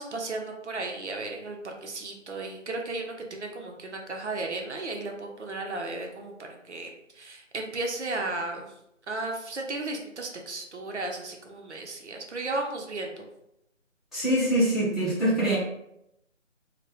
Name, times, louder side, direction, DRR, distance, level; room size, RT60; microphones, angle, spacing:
voice 1, 0.0-8.7 9.1-13.3, right 2 dB, 60° right, 2 dB, 0.6 m, -34 dB
voice 2, 14.1-15.6, right 1 dB, ahead, -13 dB, 0.4 m, -24 dB
2.1 x 2.0 x 2.9 m, 0.81 s
figure-of-eight pair, 160°, 38 cm